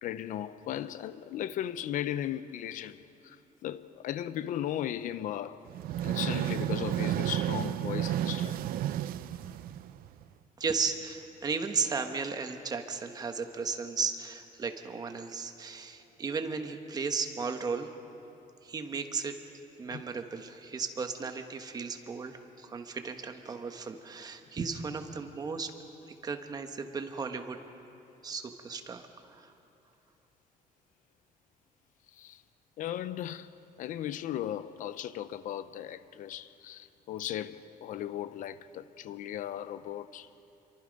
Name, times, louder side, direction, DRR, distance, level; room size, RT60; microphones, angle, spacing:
voice 1, 0.0-3.4 3.6-5.6 6.0-8.6 19.9-20.0 32.1-32.4 32.8-33.5 33.8-40.3, left 11 dB, 65° left, 0.6 m, -37 dB
sound 1, 5.7-10.2, right 12 dB, 90° right, 0.6 m, -32 dB
voice 2, 10.6-17.9 18.6-19.3 19.8-25.7 26.2-27.6 28.2-29.0, right 5 dB, 25° right, 1.2 m, -35 dB
27.5 x 23.5 x 5.3 m
cardioid pair, 175°, 15 cm